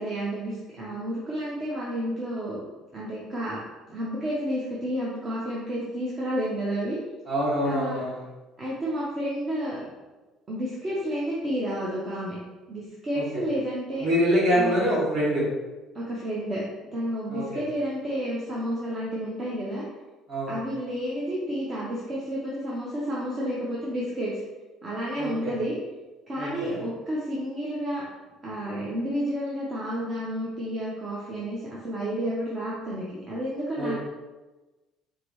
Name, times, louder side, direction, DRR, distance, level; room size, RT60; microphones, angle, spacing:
voice 1, 0.0-2.6 2.9-3.6 3.9-7.0 7.6-8.0 8.6-9.8 10.5-12.4 12.7-14.1 14.5-14.8 15.9-16.6 16.9-19.8 20.5-24.4 24.8-25.8 26.3-28.0 28.4-33.9, equal, 20° right, -6 dB, 0.6 m, -30 dB
voice 2, 7.3-8.2 13.1-13.2 14.0-15.4 17.3-17.6 20.3-20.5 25.2-25.5 26.4-26.8 33.8-33.9, equal, 40° right, -6 dB, 1.5 m, -25 dB
4.6 x 2.6 x 3.0 m, 1.2 s
cardioid pair, 170°, 0 cm